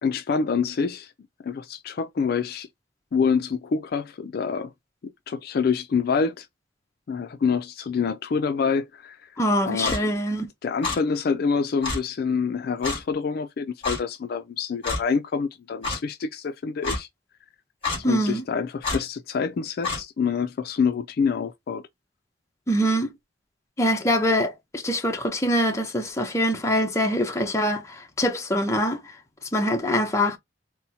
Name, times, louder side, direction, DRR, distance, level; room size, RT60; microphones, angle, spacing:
voice 1, 0.0-1.1 1.4-2.7 3.1-4.7 5.0-6.5 7.1-9.3 9.6-10.0 10.6-17.1 18.0-21.8, left 5 dB, 55° left, 0.3 m, -26 dB
voice 2, 9.4-10.5 18.0-18.4 22.7-23.1 23.8-29.0 29.5-30.4, equal, 15° left, 0.7 m, -24 dB
Clock, 9.8-10.0 10.8-11.0 11.8-12.0 12.8-13.0 13.8-14.0 14.8-15.0 15.8-16.0 16.8-17.0 17.8-18.0 18.8-19.0 19.8-20.0, left 3 dB, 30° left, 2.3 m, -27 dB
4.2 x 2.0 x 2.7 m
head